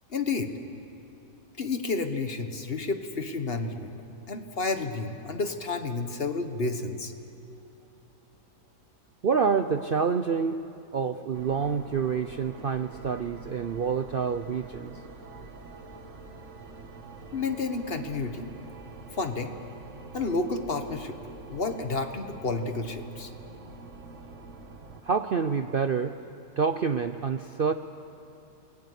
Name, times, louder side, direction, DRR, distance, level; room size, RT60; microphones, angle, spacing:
voice 1, 0.1-0.5 1.6-3.9 4.3-7.1 17.3-18.5 19.1-19.5 20.1-21.2 21.5-23.3, left 3 dB, 40° left, 7 dB, 1.5 m, -30 dB
voice 2, 9.2-10.6 10.9-15.0 25.0-26.2 26.6-27.7, right 6 dB, 65° right, 9 dB, 0.5 m, -27 dB
sound 1, 11.3-25.0, right 3 dB, 50° right, 1.7 m, -46 dB
28.5 x 20.0 x 8.2 m, 3.0 s
omnidirectional pair, 1.8 m